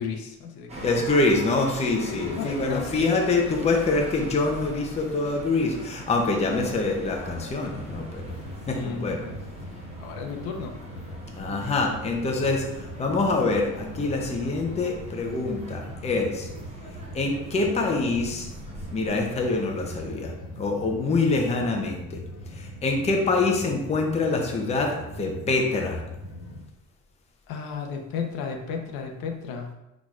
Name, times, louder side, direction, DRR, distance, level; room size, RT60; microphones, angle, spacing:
voice 1, 0.0-0.9 2.0-3.1 8.7-9.3 10.0-10.8 27.5-29.7, left 5 dB, 75° left, 3 dB, 0.8 m, -33 dB
sound 1, 0.7-20.1, right 1 dB, 15° right, 0.9 m, -42 dB
voice 2, 0.8-8.3 8.7-9.2 11.4-16.5 17.1-18.5 18.9-22.2 22.5-26.0, left 3 dB, 20° left, 1 dB, 0.6 m, -25 dB
sound 2, 7.6-26.6, equal, 40° left, 1.1 m, -41 dB
4.7 x 4.2 x 2.4 m, 0.91 s
cardioid pair, 125°, 36 cm